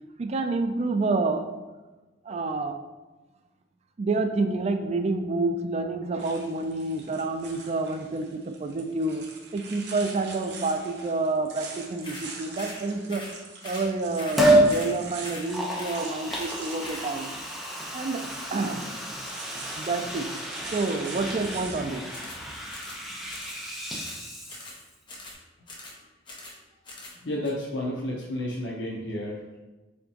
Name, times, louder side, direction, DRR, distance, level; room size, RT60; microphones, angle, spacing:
voice 1, 0.2-1.5 2.2-2.8 4.0-9.2 9.5-13.2 13.6-17.3 17.9-18.2 18.5-18.8 19.8-20.3 20.7-22.0, right 3 dB, 35° right, 7 dB, 0.3 m, -28 dB
sound 1, 6.2-22.3, right 4 dB, 70° right, 0.7 m, -44 dB
sound 2, 12.0-12.3 12.6-12.8 13.1-13.4 13.6-13.9 14.1-14.4 14.7-15.0 15.2-15.5 15.8-16.0 16.3-16.6 16.8-17.1 22.1-22.4 22.7-23.0 23.3-23.6 23.9-24.2 24.5-24.8 25.1-25.4 25.7-26.0 26.3-26.6 26.9-27.2 27.4-27.5, left 2 dB, 25° left, 0.9 m, -42 dB
Liquid, 14.4-14.7 15.3-24.9 25.3-25.4, right 1 dB, ahead, 0.7 m, -29 dB
voice 2, 27.2-29.6, left 1 dB, 80° left, -3 dB, 0.6 m, -31 dB
4.2 x 3.8 x 2.8 m, 1.2 s
head